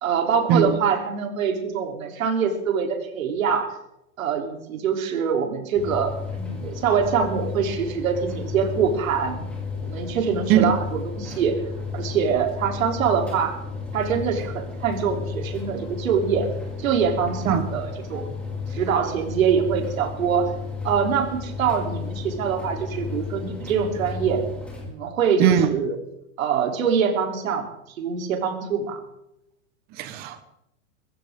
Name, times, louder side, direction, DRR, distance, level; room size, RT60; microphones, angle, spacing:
voice 1, 0.0-3.7 4.2-9.4 9.8-10.8 11.1-11.5 11.9-13.5 13.9-16.5 16.8-18.4 18.7-20.5 20.8-24.4 24.9-26.0 26.4-27.7 28.0-29.0, right 6 dB, 75° right, 4 dB, 3.5 m, -24 dB
sound 1, 5.7-24.9, left 4 dB, 5° left, 3.3 m, -33 dB
voice 2, 25.4-25.7 29.9-30.4, right 10 dB, 20° right, 11 dB, 1.1 m, -19 dB
21.5 x 15.5 x 3.7 m, 0.83 s
supercardioid pair, 170°, 41 cm